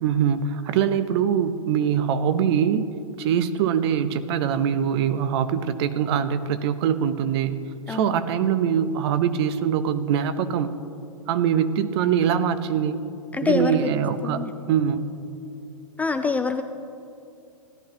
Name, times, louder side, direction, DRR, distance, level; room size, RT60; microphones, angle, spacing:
voice 1, 0.0-2.9 3.2-7.6 7.9-10.8 11.3-13.0 13.4-15.1, right 8 dB, 50° right, 12 dB, 0.7 m, -23 dB
voice 2, 7.9-8.2 13.3-13.8 14.2-14.5 16.0-16.6, left 4 dB, 10° left, 7 dB, 0.3 m, -25 dB
17.0 x 11.5 x 2.9 m, 2.5 s
hypercardioid pair, 115°, 17 cm